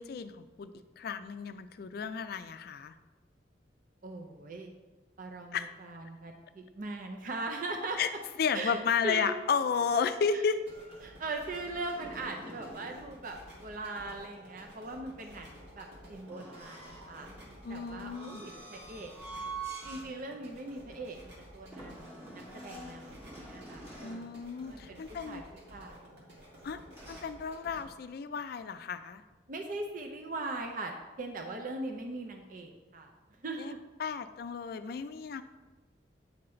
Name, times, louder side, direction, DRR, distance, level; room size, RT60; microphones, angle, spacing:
voice 1, 0.0-2.9 5.5-5.7 8.0-8.1 8.4-10.6 17.6-18.4 24.0-25.4 26.6-26.8 27.1-29.2 33.6-33.7 34.0-35.4, left 6 dB, 55° left, 11 dB, 0.4 m, -33 dB
voice 2, 4.0-4.7 5.2-8.0 8.5-8.8 9.0-9.4 10.3-10.4 11.0-17.3 17.7-19.5 19.8-24.3 24.6-25.0 25.2-25.4 25.7-26.2 29.5-30.9 31.2-33.1 33.4-33.8, right 2 dB, 50° right, 3 dB, 0.5 m, -40 dB
sound 1, 10.6-27.8, equal, 75° right, 1.7 m, -53 dB
sound 2, 10.7-13.0 16.3-20.1 20.5-20.7 21.7-24.3 26.9-27.2, right 3 dB, 15° right, 1.8 m, -46 dB
8.5 x 3.9 x 4.3 m, 1.2 s
head